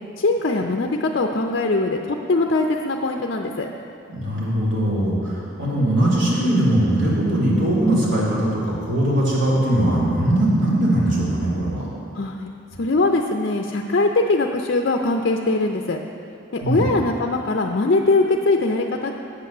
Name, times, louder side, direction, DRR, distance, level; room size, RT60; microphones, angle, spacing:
voice 1, 0.2-3.7 12.2-12.5 12.8-16.0 16.5-19.1, left 2 dB, 55° left, 2 dB, 0.6 m, -21 dB
voice 2, 4.1-11.8 16.6-16.9, right 1 dB, 70° right, -7 dB, 3.1 m, -20 dB
9.1 x 8.1 x 6.6 m, 2.6 s
head